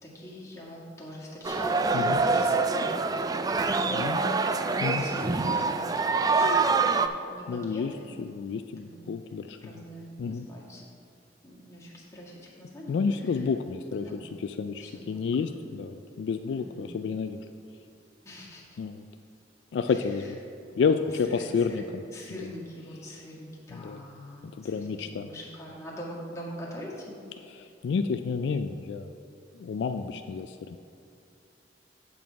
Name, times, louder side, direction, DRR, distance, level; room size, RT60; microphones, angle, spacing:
voice 1, 0.0-3.7 4.1-6.9 7.3-8.1 8.8-9.0 9.6-10.8 11.4-13.5 13.9-14.2 14.8-15.5 16.5-16.9 18.3-18.8 19.9-20.3 20.7-21.8 22.1-27.2 27.6-27.7, left 1 dB, 15° left, -6 dB, 1.8 m, -43 dB
sound 1, 1.4-7.1, right 4 dB, 20° right, 0.3 m, -25 dB
voice 2, 3.9-4.2 4.8-5.0 7.5-7.9 8.2-9.6 10.2-10.5 12.9-17.4 18.8-19.0 19.7-20.4 20.8-21.8 23.7-24.0 24.4-25.3 27.5-29.1 29.5-30.8, left 5 dB, 70° left, 8 dB, 0.3 m, -30 dB
7.6 x 7.4 x 4.6 m, 2.6 s
head